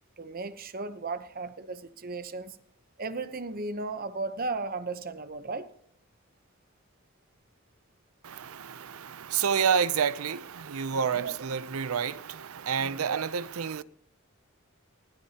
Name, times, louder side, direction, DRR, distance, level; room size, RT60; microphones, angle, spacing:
voice 1, 0.2-2.6 3.0-5.7 10.9-11.3 12.8-13.1, right 3 dB, 45° right, 0.9 m, -36 dB
voice 2, 8.2-13.8, right 7 dB, 90° right, 0.6 m, -29 dB
20.5 x 17.5 x 2.9 m
head